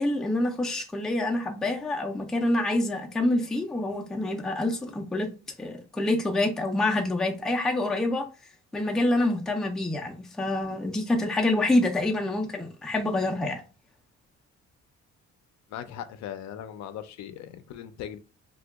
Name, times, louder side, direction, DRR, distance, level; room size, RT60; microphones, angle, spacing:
voice 1, 0.0-5.3 5.6-8.2 8.7-13.6, left 2 dB, ahead, 0.3 m, -26 dB
voice 2, 15.7-18.2, left 10 dB, 65° left, 0.4 m, -39 dB
2.8 x 2.3 x 3.4 m
cardioid pair, 145°, 30 cm